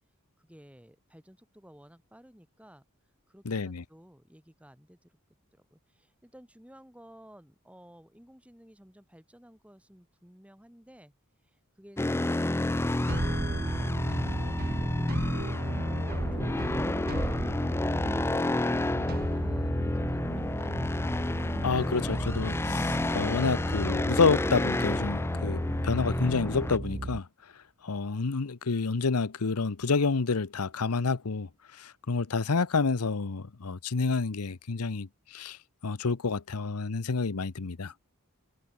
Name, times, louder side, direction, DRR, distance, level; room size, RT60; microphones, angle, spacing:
voice 1, 0.4-2.9 3.3-5.2 5.5-11.1 11.4-14.6 15.2-20.9, equal, 5° right, 7.5 m, -55 dB
voice 2, 3.5-3.8 21.6-27.3 27.8-31.5 31.8-35.6 35.8-37.9, left 4 dB, 90° left, 0.8 m, -29 dB
sound 1, 12.0-26.8, left 2 dB, 10° left, 0.4 m, -30 dB
sound 2, 12.6-27.2, right 2 dB, 45° right, 0.9 m, -36 dB
head